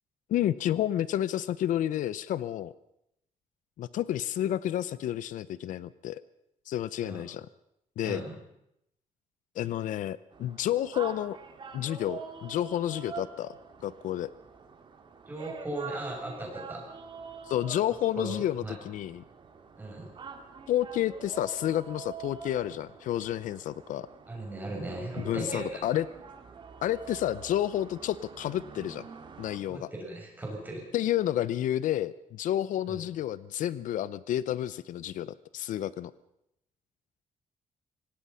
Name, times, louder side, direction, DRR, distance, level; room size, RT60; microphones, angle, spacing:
voice 1, 0.3-2.7 3.8-6.2 6.7-7.5 8.0-8.2 9.6-11.4 11.7-13.5 13.8-14.3 17.5-19.2 20.7-24.1 25.2-26.1 26.8-29.1 29.4-29.9 30.9-36.1, left 12 dB, 80° left, 17 dB, 0.7 m, -30 dB
sound 1, 10.3-29.6, right 5 dB, 40° right, 2.5 m, -46 dB
voice 2, 15.3-16.8 18.2-18.8 19.8-20.1 24.3-25.8 29.7-30.8 32.9-33.0, right 2 dB, 15° right, -1 dB, 7.6 m, -37 dB
24.5 x 18.5 x 5.7 m, 0.78 s
cardioid pair, 155°, 13 cm